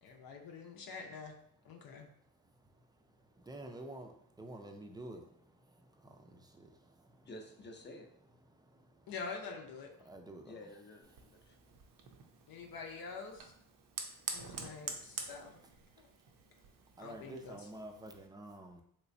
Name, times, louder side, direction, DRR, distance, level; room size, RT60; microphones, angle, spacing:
voice 1, 0.0-1.3 1.6-2.1 9.1-9.9 12.5-13.5 14.3-15.6 16.0-16.1 17.0-17.7, left 4 dB, 75° left, 1 dB, 0.7 m, -46 dB
voice 2, 3.5-4.1 4.4-5.2 10.1-10.5 17.0-18.8, right 1 dB, 10° right, 4 dB, 0.4 m, -47 dB
voice 3, 7.2-8.1 10.4-11.6, left 1 dB, 30° left, 4 dB, 0.6 m, -51 dB
Fire, 11.0-18.3, right 5 dB, 65° right, 0.6 m, -47 dB
3.3 x 3.0 x 2.6 m, 0.69 s
cardioid pair, 80°, 35 cm